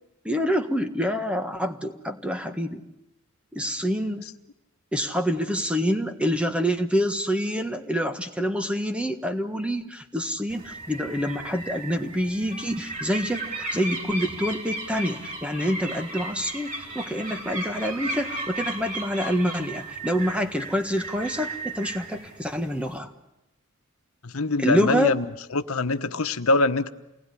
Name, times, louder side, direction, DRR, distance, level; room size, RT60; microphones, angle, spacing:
voice 1, 0.2-2.8 3.5-4.3 4.9-23.1 24.6-25.2, equal, 5° right, 7 dB, 1.5 m, -27 dB
sound 1, 10.5-23.0, right 2 dB, 40° right, 5.6 m, -36 dB
voice 2, 24.2-25.2 25.5-26.9, left 2 dB, 85° left, 9 dB, 1.2 m, -23 dB
28.5 x 19.5 x 9.9 m, 0.91 s
head